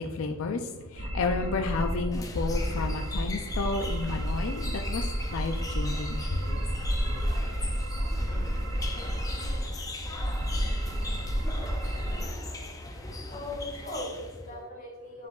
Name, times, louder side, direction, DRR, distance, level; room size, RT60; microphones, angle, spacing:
voice 1, 0.0-6.4, left 3 dB, 65° left, 4 dB, 0.4 m, -32 dB
sound 1, 1.0-12.3, equal, 65° right, 0.9 m, -31 dB
sound 2, 2.1-14.6, left 2 dB, 15° left, 0.6 m, -39 dB
voice 2, 13.3-15.3, left 1 dB, 40° left, -1 dB, 1.7 m, -38 dB
9.5 x 4.7 x 2.3 m, 1.2 s
head